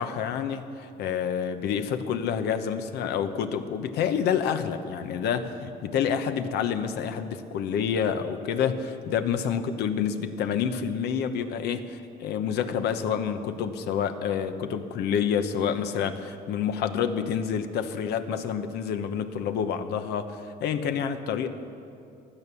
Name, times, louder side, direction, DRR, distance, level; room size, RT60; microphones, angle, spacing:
voice 1, 0.0-21.5, left 7 dB, 80° left, 9 dB, 1.0 m, -28 dB
16.0 x 11.0 x 7.0 m, 2.5 s
cardioid pair, 110°, 17 cm